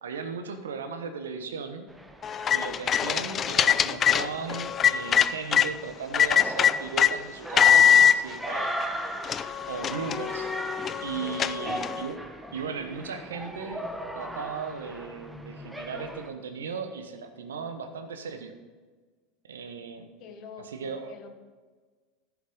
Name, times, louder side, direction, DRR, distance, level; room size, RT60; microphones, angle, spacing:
voice 1, 0.0-1.9 2.5-8.8 9.6-10.5 11.0-18.5 19.4-20.1 20.6-21.1, right 5 dB, 75° right, 7 dB, 1.1 m, -37 dB
sound 1, 1.9-16.3, right 1 dB, 5° right, 1.2 m, -38 dB
sound 2, 2.2-5.7 6.1-7.1 7.6-8.2 8.8-8.9 9.2-12.1, left 8 dB, 35° left, 0.4 m, -22 dB
voice 2, 11.2-11.9 20.2-21.3, left 5 dB, 50° left, 5 dB, 1.5 m, -46 dB
14.0 x 7.2 x 5.3 m, 1.4 s
figure-of-eight pair, 80°, 0 cm